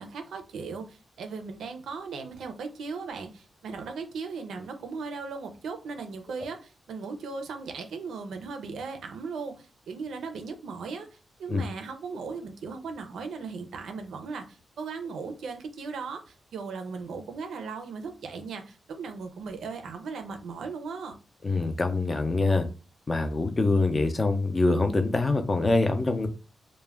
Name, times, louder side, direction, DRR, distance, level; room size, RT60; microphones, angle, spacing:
voice 1, 0.0-11.1 11.4-21.1, right 4 dB, 85° right, 6 dB, 0.5 m, -37 dB
voice 2, 21.4-22.7 23.1-26.3, left 3 dB, 25° left, 7 dB, 0.4 m, -24 dB
2.3 x 2.1 x 3.3 m, 0.33 s
wide cardioid pair, 125°, 0 cm